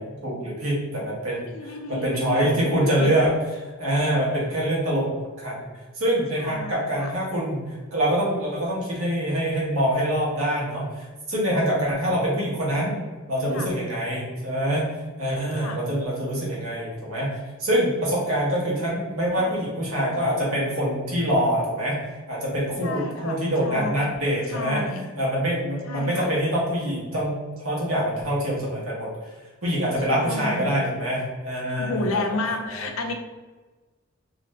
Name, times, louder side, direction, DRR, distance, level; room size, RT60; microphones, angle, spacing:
voice 1, 0.0-3.3 3.8-5.1 5.4-5.7 5.9-13.0 13.3-14.9 15.2-17.3 17.6-22.0 22.3-24.8 25.2-29.1 29.6-32.9, equal, 90° right, -5 dB, 1.1 m, -25 dB
voice 2, 1.3-3.1 6.4-7.1 11.5-11.8 13.5-13.7 15.6-15.9 19.3-19.6 22.8-24.1 24.5-25.0 25.9-26.3 30.1-30.8 31.8-33.1, left 2 dB, 75° left, 4 dB, 0.4 m, -32 dB
2.5 x 2.5 x 3.2 m, 1.3 s
head